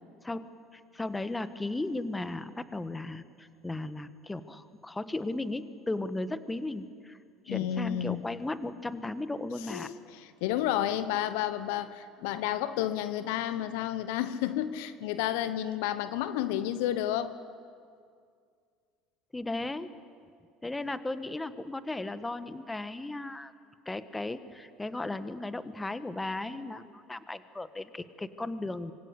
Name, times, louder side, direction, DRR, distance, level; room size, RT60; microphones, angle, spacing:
voice 1, 0.2-7.2 7.4-9.9 19.3-19.9 20.6-23.5 23.8-28.9, left 2 dB, 15° left, 12 dB, 1.4 m, -36 dB
voice 2, 7.5-8.2 9.7-17.3, left 11 dB, 65° left, 13 dB, 1.1 m, -31 dB
25.0 x 24.0 x 8.3 m, 2.2 s
hypercardioid pair, 65°, 0 cm